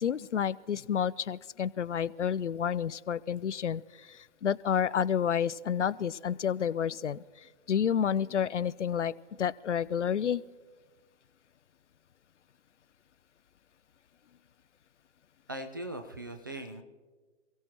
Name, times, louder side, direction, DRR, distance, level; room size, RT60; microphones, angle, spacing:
voice 1, 0.0-9.1 9.4-10.4, left 8 dB, 70° left, 18 dB, 0.5 m, -30 dB
voice 2, 15.5-16.8, right 1 dB, 20° right, 5 dB, 0.4 m, -39 dB
28.5 x 16.0 x 3.0 m, 1.4 s
figure-of-eight pair, 135°, 37 cm